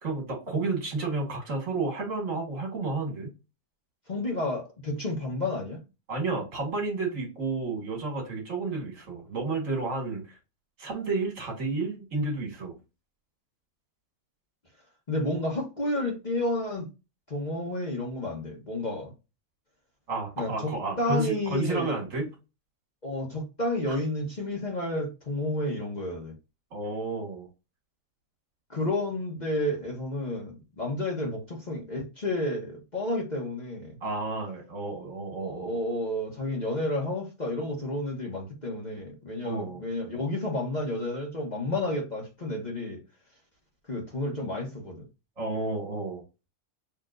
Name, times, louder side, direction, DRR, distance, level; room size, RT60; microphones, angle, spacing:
voice 1, 0.0-3.3 6.1-10.4 10.8-12.8 20.1-22.3 23.9-24.0 26.7-27.5 34.0-35.8 39.4-39.8 45.4-46.2, right 3 dB, 60° right, 2.0 m, -31 dB
voice 2, 4.1-5.8 15.1-16.9 17.3-19.1 20.4-20.7 21.0-21.9 23.0-26.3 28.7-34.0 35.4-43.0 43.9-45.0, left 1 dB, 30° left, 1.1 m, -31 dB
6.3 x 2.9 x 2.5 m
omnidirectional pair, 1.6 m